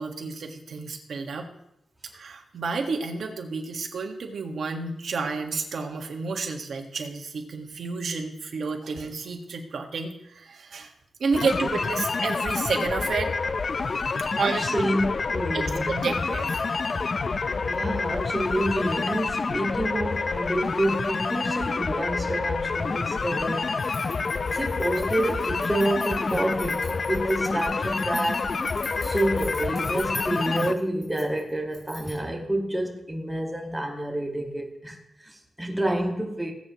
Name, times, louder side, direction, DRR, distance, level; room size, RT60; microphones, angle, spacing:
voice 1, 0.0-1.5 2.1-10.9 11.2-13.3 14.4-14.7 15.5-16.6, right 4 dB, 75° right, 2 dB, 1.7 m, -30 dB
sound 1, 11.3-30.7, left 4 dB, 45° left, 0.5 m, -28 dB
voice 2, 14.4-15.1 15.3-16.2 17.7-23.6 24.5-28.5 29.0-35.0 35.3-36.5, right 1 dB, 10° right, 1 dB, 1.9 m, -28 dB
sound 2, 23.8-32.3, left 1 dB, 20° left, 3.6 m, -43 dB
19.5 x 8.5 x 3.1 m, 0.82 s
wide cardioid pair, 115°, 0 cm